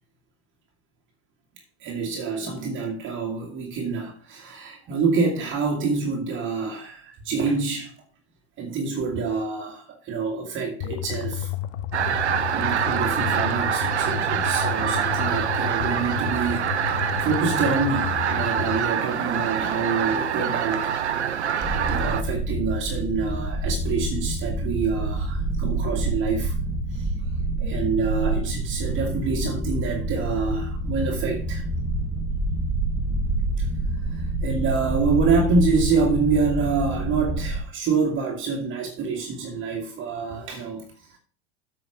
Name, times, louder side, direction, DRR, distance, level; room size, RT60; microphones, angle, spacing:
voice 1, 1.8-8.0 8.6-11.5 12.2-20.9 21.9-26.6 26.9-27.1 27.6-31.6 33.6-33.7 34.1-41.2, right 4 dB, 35° right, 2.0 m, -27 dB
sound 1, 10.8-18.8, left 12 dB, 50° left, 0.7 m, -32 dB
sound 2, 11.9-22.2, right 8 dB, 80° right, 1.0 m, -25 dB
sound 3, 21.6-37.6, right 2 dB, 20° right, 1.4 m, -27 dB
8.7 x 5.6 x 4.6 m
hypercardioid pair, 95°, 33 cm